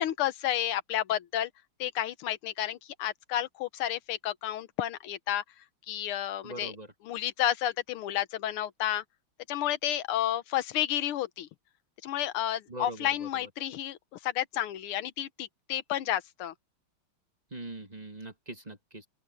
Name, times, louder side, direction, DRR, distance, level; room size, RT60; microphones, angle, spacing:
voice 1, 0.0-1.5 1.8-5.4 5.9-6.7 7.0-9.0 9.5-11.5 12.0-14.0 14.2-16.5, left 12 dB, 90° left, 1.8 m, -31 dB
voice 2, 6.4-6.9 12.7-13.3 17.5-19.1, right 2 dB, 20° right, 1.7 m, -42 dB
open air
omnidirectional pair, 2.3 m